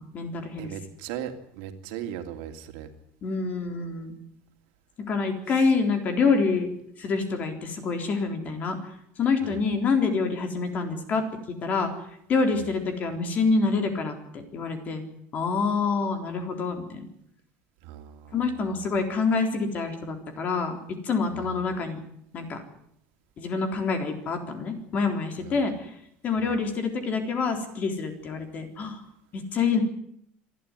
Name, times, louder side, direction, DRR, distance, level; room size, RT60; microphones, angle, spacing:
voice 1, 0.0-0.7 3.2-4.1 5.1-6.7 7.0-8.8 9.2-11.2 11.6-11.9 12.3-15.0 15.3-17.0 18.3-20.8 21.0-22.0 22.3-22.6 23.4-25.9 26.2-29.0 29.3-29.8, left 4 dB, 35° left, 6 dB, 3.8 m, -26 dB
voice 2, 0.6-2.9 9.4-9.6 12.5-12.7 17.8-18.4 21.4-21.5 25.4-25.6 26.4-26.6, right 10 dB, 80° right, 6 dB, 2.9 m, -38 dB
26.5 x 12.5 x 9.8 m, 0.72 s
cardioid pair, 150°, 5 cm